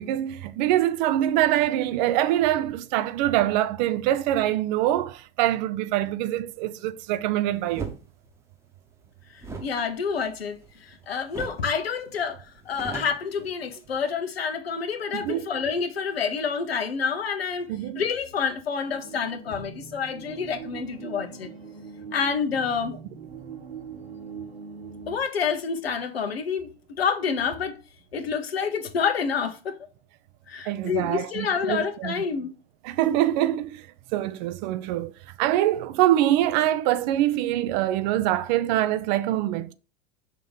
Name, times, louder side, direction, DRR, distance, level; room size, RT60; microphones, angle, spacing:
voice 1, 0.0-7.9 15.1-15.5 17.7-18.0 30.7-32.1 32.8-33.9 34.1-35.1 35.4-39.7, right 13 dB, 50° right, 0.6 m, -24 dB
sound 1, 7.7-8.0 9.4-10.9 11.3-11.7 12.0-12.1 12.4-14.0, right 4 dB, 10° right, 1.1 m, -38 dB
voice 2, 9.6-17.7 18.0-21.5 22.1-22.9 25.1-27.8 28.1-29.8 30.5-32.5, left 6 dB, 80° left, 1.1 m, -28 dB
sound 2, 18.9-25.2, right 6 dB, 80° right, 1.8 m, -42 dB
5.9 x 3.1 x 5.5 m
hypercardioid pair, 95°, 30 cm